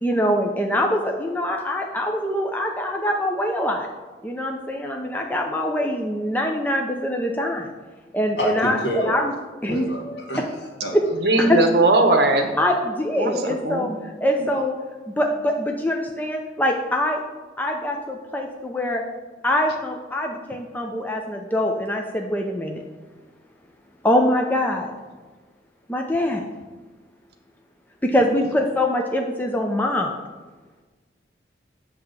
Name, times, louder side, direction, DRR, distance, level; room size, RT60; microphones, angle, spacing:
voice 1, 0.0-3.9 4.2-7.7 8.1-9.3 9.6-9.9 10.9-11.0 11.4-11.6 12.6-13.9 14.2-14.7 15.2-17.2 17.6-19.0 19.4-22.8 24.0-24.9 25.9-26.5 28.0-30.1, left 1 dB, 10° left, 1 dB, 0.5 m, -23 dB
voice 2, 8.4-9.1 9.6-11.5 14.3-14.6, equal, 70° left, -1 dB, 1.7 m, -29 dB
voice 3, 11.2-12.5 13.2-13.9, right 2 dB, 60° right, 5 dB, 0.9 m, -19 dB
7.7 x 3.5 x 6.5 m, 1.3 s
head